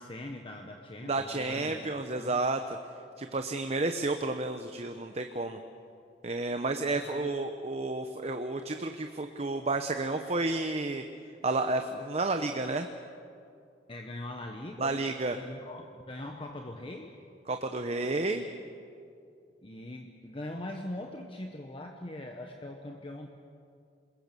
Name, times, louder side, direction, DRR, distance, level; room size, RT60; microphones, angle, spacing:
voice 1, 0.0-2.4 7.0-7.3 13.9-15.0 15.3-17.2 19.6-23.3, left 1 dB, 30° left, 2 dB, 1.3 m, -41 dB
voice 2, 1.0-2.8 3.2-5.6 6.2-11.0 11.4-12.9 14.8-15.4 17.5-18.4, right 2 dB, 35° right, 6 dB, 0.9 m, -31 dB
28.0 x 21.0 x 7.0 m, 2.4 s
head